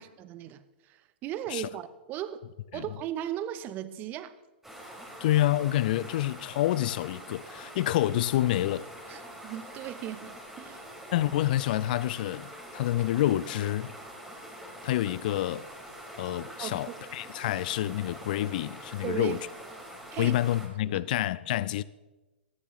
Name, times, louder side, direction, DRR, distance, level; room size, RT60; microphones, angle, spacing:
voice 1, 0.0-2.4 2.7-4.3 9.1-10.8 16.6-17.0 19.0-19.4 20.1-20.4 20.9-21.0, right 11 dB, 30° right, 0.8 m, -37 dB
sound 1, 4.6-20.7, right 1 dB, 5° right, 2.8 m, -45 dB
voice 2, 5.2-8.9 11.1-13.9 14.8-15.7 16.2-19.5 20.2-21.8, left 14 dB, 50° left, 0.5 m, -28 dB
17.0 x 13.0 x 3.2 m
figure-of-eight pair, 115°, 6 cm